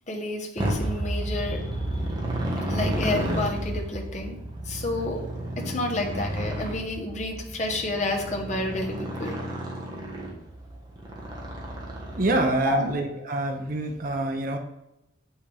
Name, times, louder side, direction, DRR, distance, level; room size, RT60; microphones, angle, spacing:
voice 1, 0.1-2.0 2.6-4.4 4.6-5.2 5.6-9.4 12.6-13.0, left 2 dB, 40° left, 1 dB, 0.9 m, -30 dB
Motorcycle, 0.6-12.7, right 1 dB, 25° right, 1.2 m, -31 dB
voice 2, 12.2-14.6, right 2 dB, 50° right, 3 dB, 0.6 m, -26 dB
6.5 x 5.5 x 3.3 m, 0.91 s
head